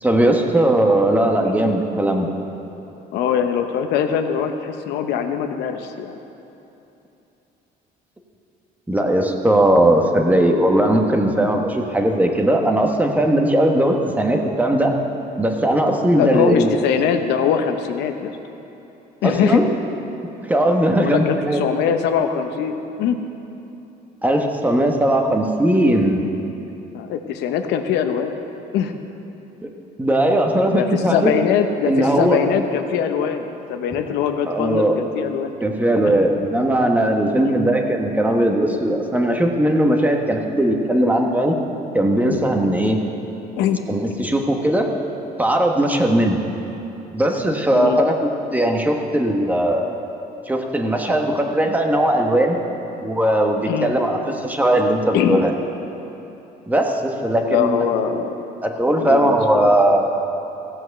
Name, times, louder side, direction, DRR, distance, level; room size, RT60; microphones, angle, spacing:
voice 1, 0.0-2.3 8.9-14.9 15.4-16.7 19.2-19.7 20.5-21.6 24.2-26.2 29.6-29.7 30.0-31.3 31.8-32.4 34.5-35.0 35.6-41.6 41.9-43.0 43.9-44.9 45.4-46.4 47.1-49.9 50.5-52.6 53.0-55.5 56.7-57.8 58.6-60.1, right 1 dB, 10° right, 2 dB, 1.3 m, -18 dB
voice 2, 3.1-6.2 16.1-18.3 19.2-19.6 20.9-23.2 26.9-28.4 28.7-28.9 30.7-35.5 36.0-36.2 37.4-37.5 43.6-43.8 47.7-48.0 53.7-54.2 55.1-55.4 57.5-58.4 58.9-59.4 59.6-59.7, left 8 dB, 85° left, 6 dB, 0.9 m, -22 dB
15.5 x 7.7 x 6.6 m, 3.0 s
cardioid pair, 110°, 17 cm